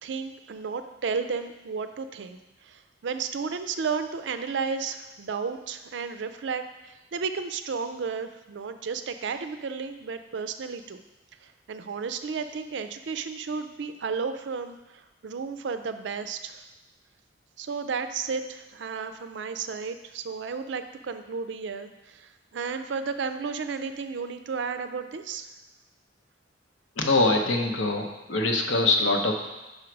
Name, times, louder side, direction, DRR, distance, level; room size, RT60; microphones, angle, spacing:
voice 1, 0.0-11.0 11.4-16.6 17.6-25.5, right 5 dB, 70° right, 9 dB, 0.4 m, -33 dB
voice 2, 27.0-29.4, left 2 dB, 85° left, 3 dB, 0.9 m, -23 dB
5.5 x 5.0 x 4.6 m, 1.1 s
head